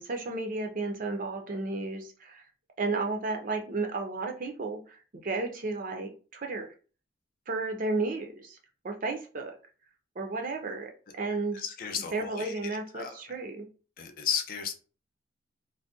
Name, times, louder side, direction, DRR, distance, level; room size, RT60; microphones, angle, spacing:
voice 1, 0.0-2.4 2.8-5.0 5.2-6.7 7.5-8.6 8.8-9.5 10.2-10.9 11.2-11.6 12.1-13.7, right 3 dB, 40° right, 3 dB, 0.5 m, -33 dB
voice 2, 11.5-13.1 14.0-14.7, left 7 dB, 45° left, 6 dB, 0.4 m, -34 dB
2.6 x 2.1 x 3.5 m, 0.37 s
head